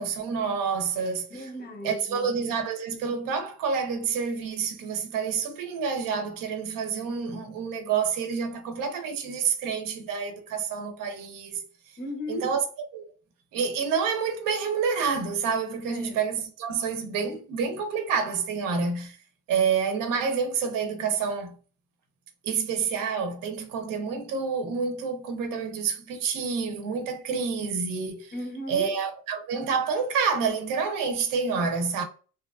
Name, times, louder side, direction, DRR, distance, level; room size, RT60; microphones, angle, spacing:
voice 1, 0.0-1.3 1.8-11.6 12.3-12.6 12.9-13.0 13.5-19.2 19.5-21.6 22.4-28.3 28.7-32.0, right 6 dB, 80° right, 0.8 m, -28 dB
voice 2, 1.3-2.3 12.0-12.6 15.9-16.2 28.3-28.9, left 1 dB, 30° left, 0.5 m, -36 dB
3.0 x 2.3 x 2.3 m
cardioid pair, 170°, 33 cm